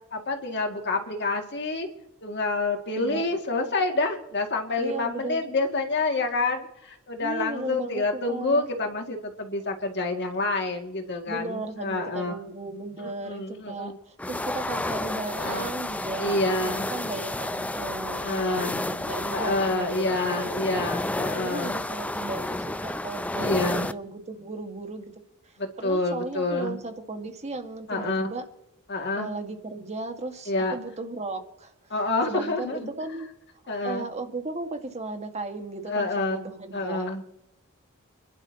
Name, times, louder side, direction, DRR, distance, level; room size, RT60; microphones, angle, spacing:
voice 1, 0.1-1.9 2.2-12.4 13.2-14.0 15.2-15.7 16.2-16.9 18.2-18.8 19.3-21.7 23.4-23.9 25.6-26.8 27.9-28.3 28.9-29.3 30.5-30.8 31.9-32.9 33.7-34.1 35.9-36.4 36.7-37.2, left 2 dB, 55° left, 3 dB, 2.3 m, -28 dB
voice 2, 3.0-3.3 4.8-5.4 7.2-8.7 11.3-20.8 21.4-25.0 25.8-28.5 29.2-31.7 32.3-33.3 33.6-37.1, right 2 dB, 30° right, 5 dB, 1.8 m, -36 dB
sound 1, 14.2-23.9, left 1 dB, 5° left, 0.4 m, -31 dB
30.0 x 11.5 x 3.0 m, 0.81 s
head